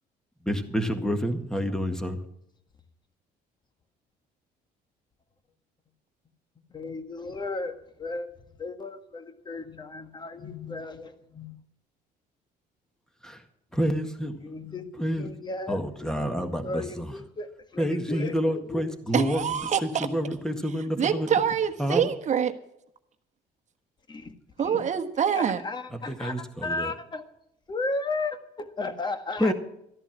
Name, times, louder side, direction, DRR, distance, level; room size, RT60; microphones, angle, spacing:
voice 1, 0.4-2.2 13.2-13.4 13.7-14.3 15.0-15.3 15.7-17.1 17.8-21.3 21.8-22.1 26.1-26.9 29.4-29.5, equal, 5° left, 6 dB, 1.7 m, -28 dB
voice 2, 6.7-11.5 14.4-14.9 15.2-16.3 16.6-18.9 24.1-24.3 24.6-24.8 25.3-27.2 27.7-29.5, left 3 dB, 25° left, 8 dB, 1.6 m, -35 dB
voice 3, 19.1-20.1 21.0-22.5 24.6-25.6, right 8 dB, 45° right, 7 dB, 1.3 m, -25 dB
13.5 x 11.0 x 6.0 m, 0.78 s
cardioid pair, 110°, 17 cm